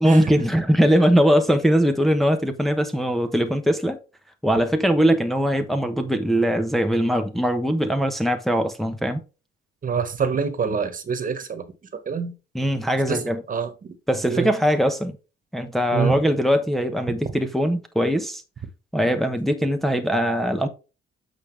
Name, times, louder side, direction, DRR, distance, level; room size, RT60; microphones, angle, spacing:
voice 1, 0.0-4.0 4.4-9.2 12.5-13.4 14.1-15.2 15.5-18.4 18.9-20.7, equal, ahead, 1.0 m, -21 dB
voice 2, 9.8-11.6 12.0-12.3 13.1-13.2 13.5-14.0 14.3-14.5 15.9-16.2, right 6 dB, 45° right, 1.5 m, -25 dB
8.2 x 5.1 x 3.3 m
cardioid pair, 90°, 20 cm